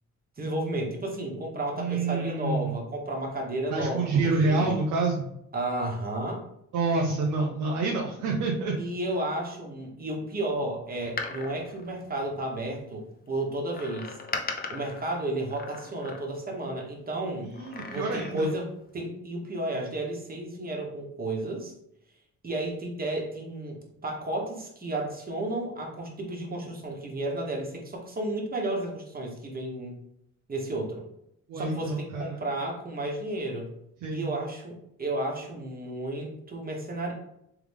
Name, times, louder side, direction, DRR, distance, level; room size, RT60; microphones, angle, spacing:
voice 1, 0.4-4.1 4.4-4.8 5.5-6.4 8.8-14.2 14.7-17.5 17.9-18.7 18.9-21.7 22.4-30.0 30.5-31.0 31.5-33.7 34.1-37.1, right 1 dB, 30° right, 0 dB, 1.3 m, -32 dB
voice 2, 1.8-2.8 3.7-5.3 6.7-8.7 17.4-18.5 31.5-32.4 34.0-34.3, right 3 dB, 80° right, -2 dB, 0.8 m, -27 dB
Door, 11.0-12.8 13.7-16.6 17.5-18.7 19.0-19.1, left 4 dB, 30° left, 0.6 m, -39 dB
3.5 x 3.4 x 3.5 m, 0.76 s
cardioid pair, 90°, 30 cm